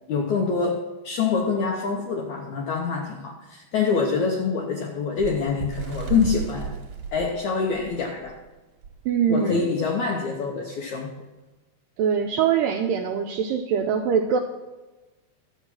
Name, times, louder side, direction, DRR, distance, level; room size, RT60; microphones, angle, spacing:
voice 1, 0.1-6.8 7.1-8.4 9.3-11.2, left 5 dB, 75° left, 1 dB, 1.7 m, -25 dB
Bird, 5.2-8.4 8.8-9.0 9.3-9.5 10.3-10.4, right 5 dB, 50° right, 2.4 m, -33 dB
voice 2, 9.1-9.6 12.0-14.4, right 7 dB, 80° right, 4 dB, 2.0 m, -23 dB
11.5 x 7.2 x 5.9 m, 1.1 s
omnidirectional pair, 4.5 m